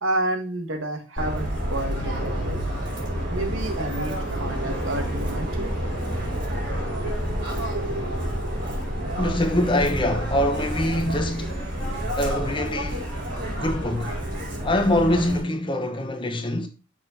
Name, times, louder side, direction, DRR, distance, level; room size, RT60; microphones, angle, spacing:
voice 1, 0.0-2.6 3.3-5.7, right 1 dB, 80° right, 1.7 m, -30 dB
Subway metro underground, 1.2-15.4, equal, 60° right, 4.3 m, -29 dB
voice 2, 9.2-11.7 12.1-13.2 13.6-14.2 14.6-16.7, left 1 dB, 25° left, 1.1 m, -24 dB
6.6 x 6.1 x 4.5 m
head